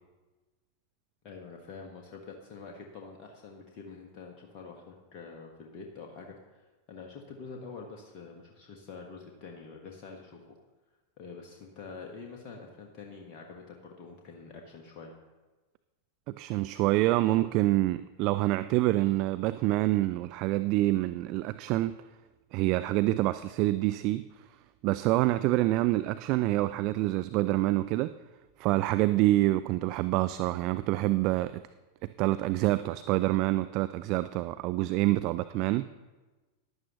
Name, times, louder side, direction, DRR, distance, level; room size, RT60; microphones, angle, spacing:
voice 1, 1.2-10.6 11.2-15.2, left 4 dB, 40° left, 1 dB, 1.4 m, -46 dB
voice 2, 16.3-22.0 22.5-24.3 24.8-28.1 28.6-31.6 32.0-35.9, right 17 dB, 40° right, 13 dB, 0.3 m, -26 dB
14.5 x 11.0 x 3.0 m, 1.2 s
figure-of-eight pair, 90°, 0 cm